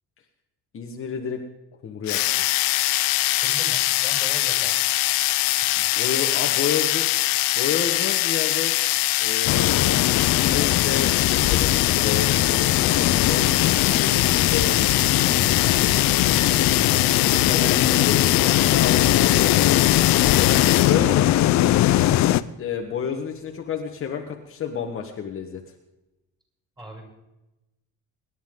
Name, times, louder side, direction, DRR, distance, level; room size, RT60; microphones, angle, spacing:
voice 1, 0.7-1.4 1.8-2.4 5.9-7.1 7.5-8.7 9.2-15.6 17.4-19.8 20.3-21.3 22.6-25.6, left 7 dB, 40° left, 2 dB, 1.5 m, -30 dB
sound 1, 2.1-21.0, left 18 dB, 80° left, 0.8 m, -22 dB
voice 2, 3.0-4.8 16.2-18.2 22.0-22.3 26.8-27.1, equal, 10° right, -1 dB, 7.0 m, -40 dB
sound 2, 9.5-22.4, left 14 dB, 55° left, 0.6 m, -21 dB
sound 3, 13.4-24.5, right 3 dB, 80° right, 3.6 m, -44 dB
25.5 x 11.5 x 3.8 m, 0.96 s
cardioid pair, 145°, 35 cm